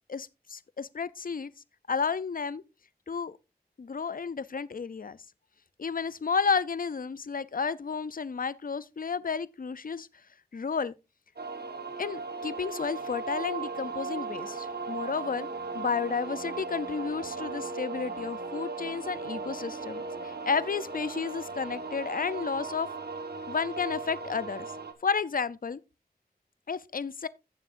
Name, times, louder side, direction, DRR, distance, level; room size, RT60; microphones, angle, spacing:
voice 1, 0.1-1.5 1.9-2.6 3.1-3.4 3.8-5.2 5.8-10.1 10.5-10.9 12.0-15.5 15.7-22.9 23.5-24.7 25.0-25.8 26.7-27.3, left 5 dB, 60° left, 0.5 m, -32 dB
sound 1, 11.4-24.9, right 4 dB, 85° right, 1.3 m, -37 dB
15.5 x 7.1 x 2.5 m
wide cardioid pair, 55°, 16 cm